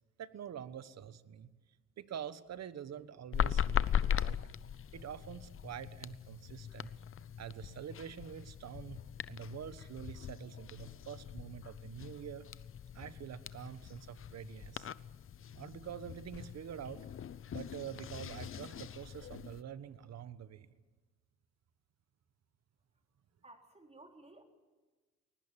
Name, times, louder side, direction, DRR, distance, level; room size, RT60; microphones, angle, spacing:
voice 1, 0.2-1.5 2.0-4.4 4.9-6.9 7.4-9.0 9.3-12.4 12.9-14.9 15.5-17.0 17.5-20.7, right 9 dB, 60° right, 14 dB, 1.3 m, -46 dB
sound 1, 3.3-19.6, left 9 dB, 45° left, 0.7 m, -39 dB
voice 2, 23.4-24.4, right 2 dB, 20° right, 4 dB, 4.0 m, -56 dB
21.5 x 19.5 x 9.1 m, 1.3 s
cardioid pair, 90°, 30 cm